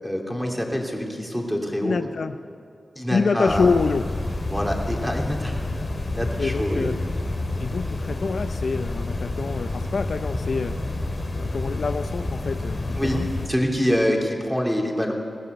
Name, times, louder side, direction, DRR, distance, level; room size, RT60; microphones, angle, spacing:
voice 1, 0.0-2.1 2.9-3.7 4.4-5.6 6.1-6.9 12.9-13.2 13.5-15.2, equal, ahead, 0 dB, 3.1 m, -25 dB
voice 2, 1.8-2.4 3.1-4.1 6.4-7.0 7.6-10.7 11.4-13.3, left 4 dB, 65° left, 9 dB, 0.6 m, -26 dB
sound 1, 3.5-13.5, left 2 dB, 40° left, 2.8 m, -29 dB
20.5 x 16.0 x 8.1 m, 2.3 s
wide cardioid pair, 90°, 0 cm